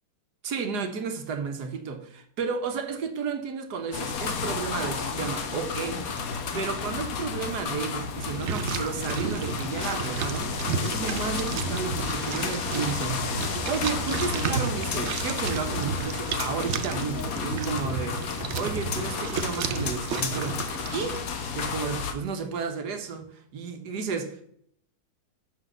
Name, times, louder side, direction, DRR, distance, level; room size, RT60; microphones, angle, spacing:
voice 1, 0.4-6.0 6.5-18.2 18.5-20.6 20.9-21.2 21.5-24.4, right 5 dB, 85° right, 6 dB, 1.6 m, -32 dB
sound 1, 3.9-22.1, left 5 dB, 65° left, 1.4 m, -32 dB
sound 2, 8.2-21.2, right 6 dB, 60° right, 0.8 m, -33 dB
6.3 x 6.2 x 6.6 m, 0.68 s
omnidirectional pair, 1.7 m